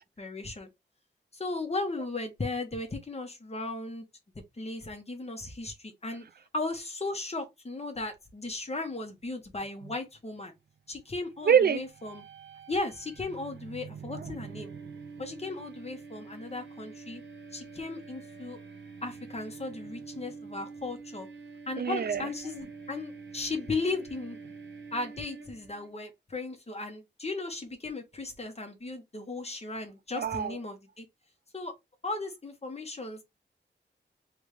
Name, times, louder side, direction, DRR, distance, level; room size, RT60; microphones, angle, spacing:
voice 1, 0.2-0.7 1.3-4.0 4.6-6.3 6.5-10.5 10.9-12.2 12.7-14.7 15.2-17.2 17.5-18.6 19.0-21.3 21.7-24.4 24.9-31.0 31.5-31.7 32.0-33.2, left 3 dB, 35° left, 1.3 m, -36 dB
voice 2, 11.5-11.8 21.8-22.2 30.1-30.6, right 8 dB, 55° right, 0.4 m, -24 dB
sound 1, 11.8-25.9, right 5 dB, 75° right, 1.0 m, -46 dB
3.5 x 3.3 x 3.2 m
wide cardioid pair, 110°, 19 cm